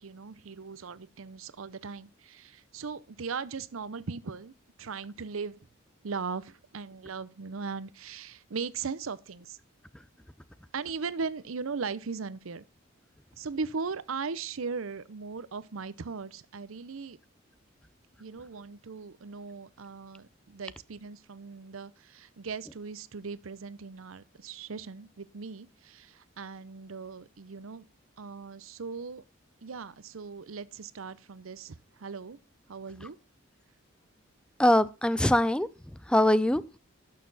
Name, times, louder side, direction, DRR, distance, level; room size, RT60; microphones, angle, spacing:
voice 1, 0.0-4.5 4.8-5.6 6.0-9.6 10.7-12.6 13.4-17.2 18.2-27.9 28.2-29.2 29.6-32.4 32.7-33.2, right 5 dB, 85° right, 0.7 m, -38 dB
voice 2, 34.6-35.7 36.1-36.8, left 1 dB, 5° left, 0.5 m, -23 dB
11.5 x 6.7 x 4.0 m
head